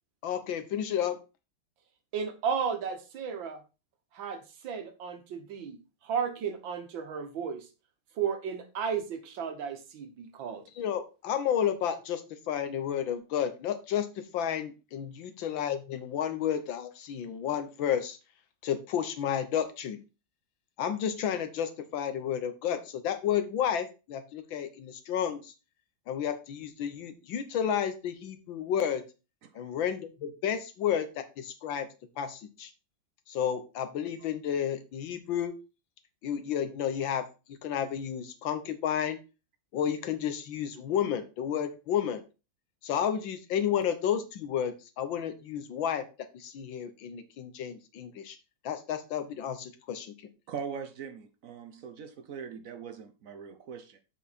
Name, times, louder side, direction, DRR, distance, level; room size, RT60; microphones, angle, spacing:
voice 1, 0.2-1.2 10.8-14.1 14.3-18.2 18.6-20.0 20.8-25.5 26.1-29.0 29.6-31.9 32.2-32.7 33.3-35.5 36.2-39.2 39.7-42.2 42.8-46.1 46.3-48.4 48.6-50.1, left 9 dB, 90° left, 1.7 m, -31 dB
voice 2, 2.1-3.6 4.2-5.8 6.0-7.6 8.2-10.6, right 7 dB, 85° right, 2.0 m, -34 dB
voice 3, 50.5-54.0, right 6 dB, 60° right, 0.9 m, -41 dB
7.4 x 5.7 x 4.2 m
omnidirectional pair, 2.0 m